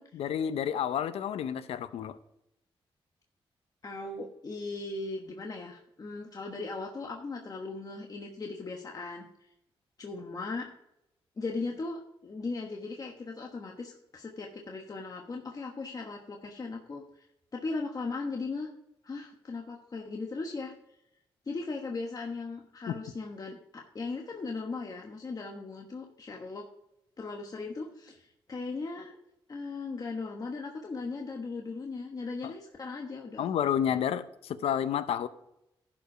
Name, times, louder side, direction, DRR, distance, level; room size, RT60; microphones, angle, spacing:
voice 1, 0.1-2.2 22.9-23.0 32.4-32.5 33.4-35.3, left 9 dB, 85° left, 13 dB, 0.6 m, -30 dB
voice 2, 3.8-9.3 10.0-10.7 11.4-17.3 17.5-18.7 19.0-20.7 21.5-26.7 27.2-29.2 29.5-33.5, left 3 dB, 40° left, 2 dB, 1.2 m, -38 dB
11.5 x 5.2 x 4.9 m, 0.83 s
cardioid pair, 80°, 10 cm